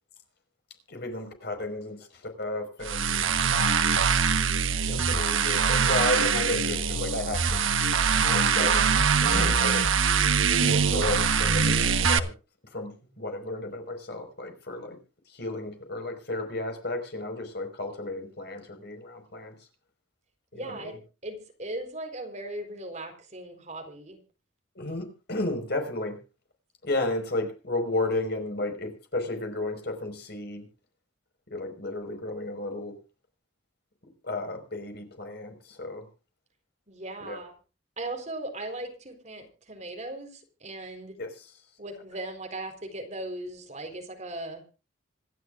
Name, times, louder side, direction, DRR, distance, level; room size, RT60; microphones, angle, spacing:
voice 1, 0.9-3.4 4.9-7.6 8.3-8.9 9.2-9.9 10.6-11.8 12.1-12.3 12.7-15.0 15.3-19.5 20.5-20.9 24.7-26.2 26.8-30.7 31.5-33.0 34.2-36.1 37.2-37.4 41.2-41.5, left 2 dB, 55° left, 5 dB, 5.0 m, -33 dB
sound 1, 2.8-12.2, right 6 dB, 75° right, 1.3 m, -23 dB
voice 2, 20.5-24.2 36.9-37.5 38.0-41.2 41.8-44.6, right 2 dB, 35° right, 5 dB, 4.1 m, -38 dB
26.5 x 12.0 x 2.5 m, 0.33 s
head